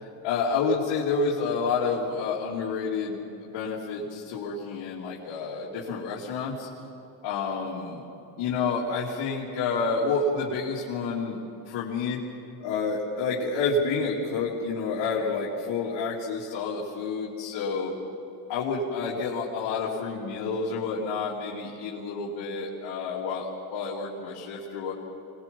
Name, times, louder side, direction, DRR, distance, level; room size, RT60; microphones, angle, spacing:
voice 1, 0.0-6.7 7.2-8.0 8.4-11.4 11.6-12.2 12.6-17.9 18.5-24.9, left 4 dB, 80° left, -5 dB, 3.0 m, -29 dB
25.5 x 20.5 x 5.4 m, 2.9 s
supercardioid pair, 90°, 46 cm